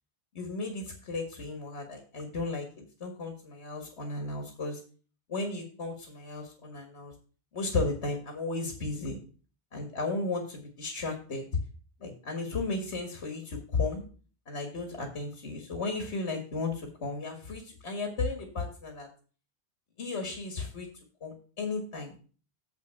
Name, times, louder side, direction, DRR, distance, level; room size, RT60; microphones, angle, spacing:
voice 1, 0.4-4.8 5.3-7.1 7.5-9.2 9.7-11.5 12.0-14.0 14.5-19.1 20.0-20.9 21.2-22.1, left 3 dB, 75° left, 3 dB, 1.9 m, -34 dB
7.6 x 5.6 x 6.9 m, 0.39 s
omnidirectional pair, 1.1 m